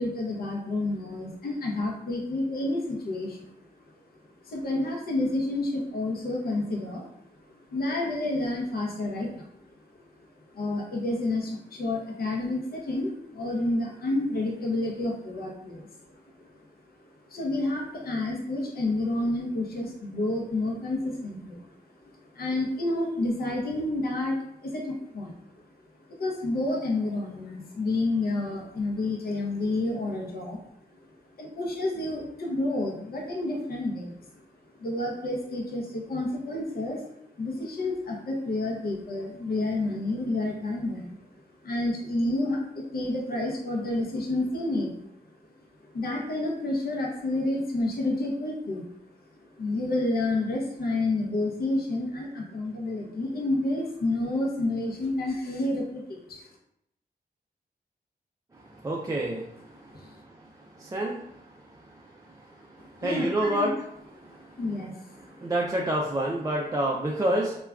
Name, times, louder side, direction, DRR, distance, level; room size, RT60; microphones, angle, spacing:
voice 1, 0.0-3.6 4.4-7.1 7.5-9.9 10.4-16.7 17.0-21.8 22.0-25.4 26.1-30.6 30.9-31.0 31.4-34.5 34.7-37.1 37.4-41.2 41.6-45.0 45.8-48.9 49.6-56.5 59.9-60.1 62.8-63.7 64.6-65.5, left 2 dB, 65° left, 0 dB, 0.6 m, -30 dB
voice 2, 58.8-59.5 60.8-61.2 63.0-63.7 64.2-64.3 65.4-67.6, right 1 dB, 20° right, -2 dB, 0.3 m, -27 dB
3.3 x 2.2 x 2.3 m, 0.75 s
wide cardioid pair, 85°, 17 cm